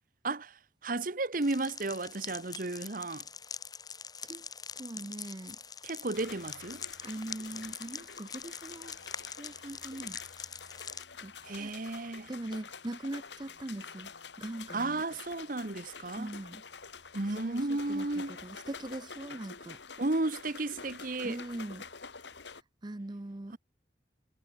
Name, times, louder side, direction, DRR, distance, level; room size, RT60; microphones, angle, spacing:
voice 1, 0.2-3.2 5.8-6.8 11.4-12.3 14.7-16.3 17.1-18.4 20.0-21.4 23.5-23.6, right 2 dB, 50° right, 1.2 m, -33 dB
sound 1, 1.4-11.0, left 6 dB, 20° left, 3.4 m, -44 dB
voice 2, 4.8-5.6 7.0-9.0 9.4-10.2 11.2-11.8 12.3-14.1 14.4-15.0 16.2-16.6 17.3-19.8 21.2-21.9 22.8-23.6, right 1 dB, 25° right, 0.6 m, -41 dB
sound 2, 6.1-22.6, left 5 dB, 80° left, 2.7 m, -48 dB
head